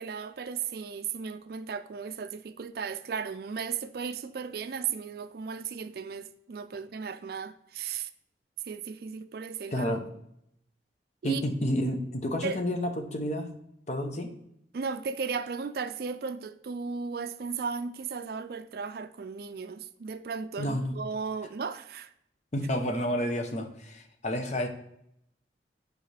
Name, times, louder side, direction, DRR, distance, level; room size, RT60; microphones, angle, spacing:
voice 1, 0.0-8.1 8.6-10.0 11.2-11.4 12.4-12.6 14.7-22.1, right 5 dB, 60° right, 0.4 m, -35 dB
voice 2, 9.7-10.1 11.2-13.5 13.9-14.3 20.6-21.0 22.5-24.7, equal, 40° left, 0.8 m, -30 dB
8.8 x 4.9 x 3.3 m
head